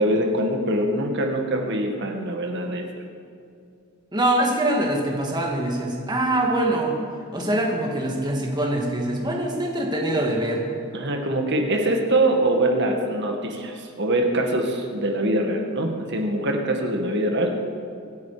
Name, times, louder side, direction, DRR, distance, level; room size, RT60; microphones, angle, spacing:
voice 1, 0.0-2.9 10.9-17.7, right 1 dB, 55° right, 2 dB, 1.9 m, -23 dB
voice 2, 4.1-7.0 7.3-10.6, right 1 dB, 20° right, 0 dB, 2.3 m, -24 dB
25.0 x 9.4 x 5.1 m, 2.4 s
head